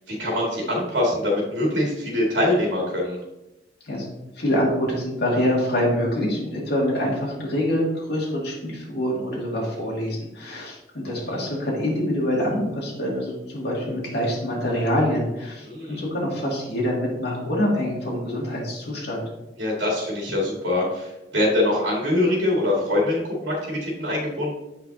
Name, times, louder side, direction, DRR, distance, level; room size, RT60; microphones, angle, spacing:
voice 1, 0.1-3.2 15.6-16.0 19.6-24.5, left 1 dB, 85° right, -3 dB, 2.1 m, -23 dB
voice 2, 4.4-19.2, equal, 60° left, -4 dB, 2.4 m, -25 dB
7.9 x 5.8 x 2.8 m, 0.96 s
head